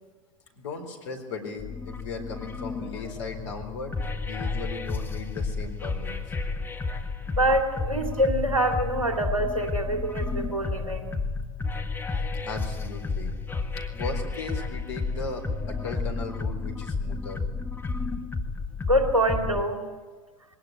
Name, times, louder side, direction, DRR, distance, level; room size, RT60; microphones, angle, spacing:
voice 1, 0.5-3.9 4.2-6.1 12.4-13.3 13.9-17.4, left 3 dB, 60° left, 5 dB, 4.1 m, -37 dB
sound 1, 1.6-19.6, left 4 dB, 10° left, 1.8 m, -32 dB
voice 2, 7.3-11.1 18.8-19.9, right 1 dB, 80° right, 4 dB, 2.7 m, -25 dB
21.5 x 19.0 x 9.2 m, 1.4 s
figure-of-eight pair, 85°, 17 cm